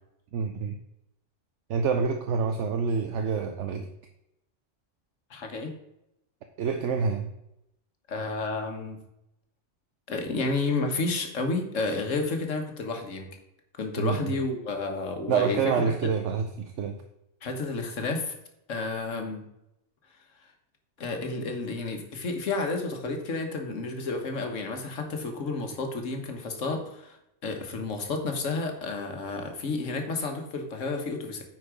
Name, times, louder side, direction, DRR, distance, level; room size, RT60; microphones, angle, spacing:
voice 1, 0.3-0.8 1.7-3.9 6.6-7.3 14.0-14.3 15.3-17.0, right 5 dB, 70° right, 6 dB, 0.9 m, -27 dB
voice 2, 5.3-5.7 8.1-9.0 10.1-13.3 13.8-15.9 17.4-18.3 18.7-19.4 21.0-27.2 27.4-31.4, left 3 dB, 75° left, 4 dB, 1.6 m, -31 dB
9.4 x 4.6 x 5.0 m, 0.84 s
omnidirectional pair, 1.3 m